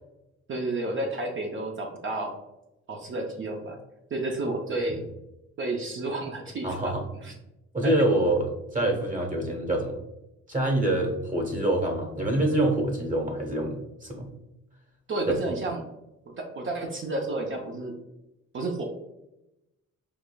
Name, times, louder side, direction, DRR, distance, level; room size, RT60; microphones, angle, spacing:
voice 1, 0.5-2.3 2.9-3.8 4.1-5.0 5.6-6.9 7.2-7.3 7.8-7.9 15.1-15.8 16.3-17.9 18.5-18.8, right 2 dB, 40° right, 1 dB, 0.6 m, -31 dB
voice 2, 6.6-7.0 7.7-10.0 10.5-14.3 15.3-15.4, right 1 dB, 25° right, 1 dB, 1.0 m, -26 dB
4.8 x 2.5 x 2.2 m, 0.93 s
cardioid pair, 90°, 30 cm